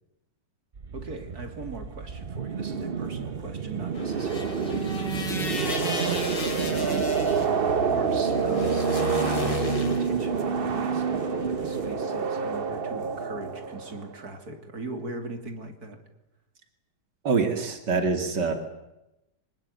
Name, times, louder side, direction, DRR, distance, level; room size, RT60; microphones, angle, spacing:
sound 1, 0.8-14.2, right 6 dB, 40° right, 1.0 m, -28 dB
voice 1, 0.9-7.1 7.9-16.0, right 2 dB, 60° right, 6 dB, 3.4 m, -39 dB
sound 2, 3.9-11.9, left 2 dB, 90° left, 4.3 m, -34 dB
voice 2, 17.2-18.5, right 4 dB, 75° right, 7 dB, 3.1 m, -25 dB
25.5 x 19.5 x 9.5 m, 0.92 s
omnidirectional pair, 1.9 m